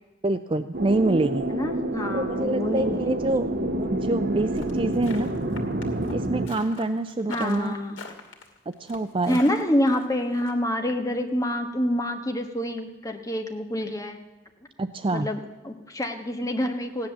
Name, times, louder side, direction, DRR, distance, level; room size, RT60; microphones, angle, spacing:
voice 1, 0.2-1.4 2.1-3.5 3.8-5.3 6.1-7.8 8.7-9.6 14.8-15.3, right 2 dB, 25° right, 10 dB, 0.4 m, -26 dB
sound 1, 0.7-6.5, right 1 dB, 50° right, 1.1 m, -28 dB
voice 2, 1.5-3.3 7.3-8.0 9.3-14.2 15.1-15.4 15.6-17.1, left 1 dB, 15° left, 4 dB, 1.3 m, -27 dB
sound 2, 4.6-10.5, left 4 dB, 75° left, 2.4 m, -42 dB
16.0 x 10.5 x 7.2 m, 1.2 s
head